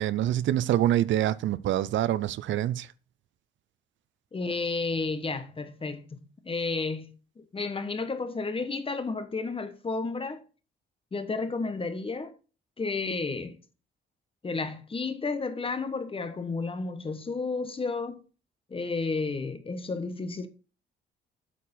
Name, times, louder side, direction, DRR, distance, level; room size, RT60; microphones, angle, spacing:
voice 1, 0.0-2.9, right 12 dB, 70° right, 0.5 m, -26 dB
voice 2, 4.3-10.4 11.1-12.3 12.8-13.6 14.4-18.2 18.7-20.5, left 3 dB, 25° left, 1.2 m, -32 dB
8.3 x 4.8 x 5.6 m
cardioid pair, 90°, 20 cm